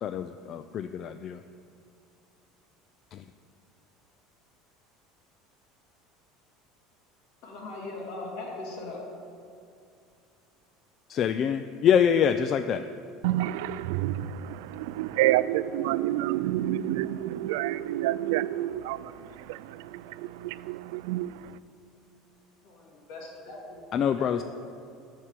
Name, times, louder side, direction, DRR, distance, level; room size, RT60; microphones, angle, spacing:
voice 1, 0.0-1.4 3.1-3.2 11.1-12.9 23.9-24.4, left 8 dB, 40° left, 0.3 m, -25 dB
voice 2, 7.4-9.0 22.6-24.4, left 2 dB, 65° left, 2.7 m, -40 dB
voice 3, 13.2-21.6, right 14 dB, 80° right, 0.3 m, -29 dB
11.5 x 4.8 x 8.2 m
supercardioid pair, 135°, 0 cm